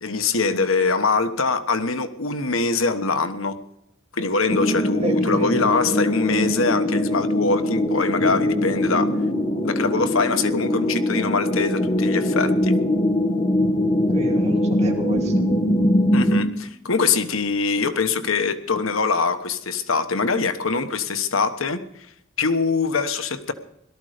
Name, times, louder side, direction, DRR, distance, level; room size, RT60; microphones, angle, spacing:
voice 1, 0.0-3.6 4.1-9.1 9.6-12.8 16.1-21.8 22.4-23.5, left 4 dB, 80° left, 10 dB, 1.2 m, -23 dB
sound 1, 4.5-16.4, left 1 dB, 30° left, 1.5 m, -22 dB
voice 2, 5.0-5.7 14.1-15.5, right 1 dB, 30° right, 1 dB, 2.7 m, -30 dB
18.0 x 13.0 x 5.1 m, 0.77 s
head